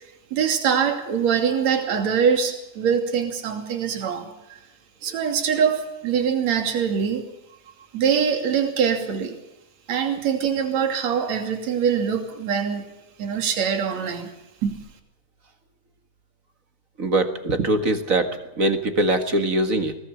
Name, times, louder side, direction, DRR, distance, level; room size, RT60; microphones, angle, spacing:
voice 1, 0.3-4.6 5.0-7.2 7.9-9.4 9.9-12.8 13.2-14.3 14.6-14.7, right 7 dB, 60° right, 5 dB, 3.9 m, -23 dB
voice 2, 17.0-20.0, right 2 dB, 35° right, 8 dB, 1.6 m, -22 dB
21.5 x 19.5 x 7.0 m, 0.92 s
omnidirectional pair, 3.6 m